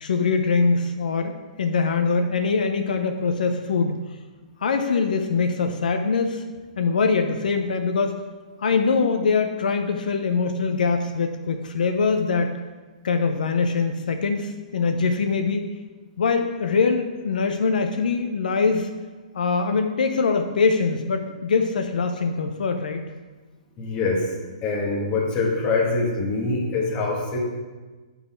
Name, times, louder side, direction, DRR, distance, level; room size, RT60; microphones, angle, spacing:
voice 1, 0.0-4.0 4.6-6.4 6.8-8.2 8.6-12.5 13.0-15.6 16.2-18.9 19.3-23.0, left 4 dB, 80° left, 6 dB, 0.6 m, -23 dB
voice 2, 23.8-24.3 24.6-27.4, left 3 dB, 20° left, -2 dB, 1.4 m, -24 dB
9.0 x 4.0 x 4.3 m, 1.3 s
hypercardioid pair, 165°, 4 cm